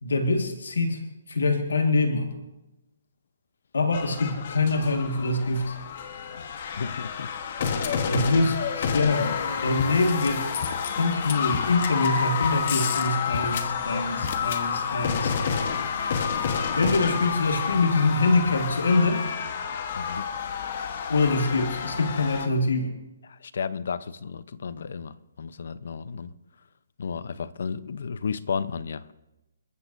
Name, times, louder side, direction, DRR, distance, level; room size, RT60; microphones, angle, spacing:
voice 1, 0.0-2.3 3.7-5.8 8.1-10.5 11.0-15.3 16.8-19.3 21.1-23.0, left 3 dB, 90° left, 1.8 m, -24 dB
sound 1, 3.9-22.5, left 6 dB, 45° left, 1.2 m, -29 dB
voice 2, 6.8-7.3 20.0-20.3 23.3-26.3 27.0-29.1, left 6 dB, 65° left, 0.7 m, -33 dB
27.5 x 14.0 x 2.7 m
hypercardioid pair, 160°, 0 cm